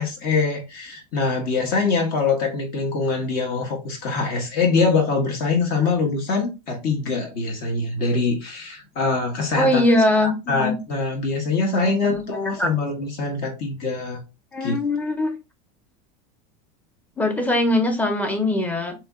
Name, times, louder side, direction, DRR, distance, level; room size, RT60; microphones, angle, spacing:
voice 1, 0.0-9.8 10.2-14.2 14.6-14.8, left 4 dB, 50° left, 1.0 m, -23 dB
voice 2, 9.6-10.8 11.8-12.7 14.5-15.3 17.2-18.9, left 1 dB, 10° left, 0.7 m, -22 dB
3.2 x 2.9 x 2.3 m
supercardioid pair, 125°, 20 cm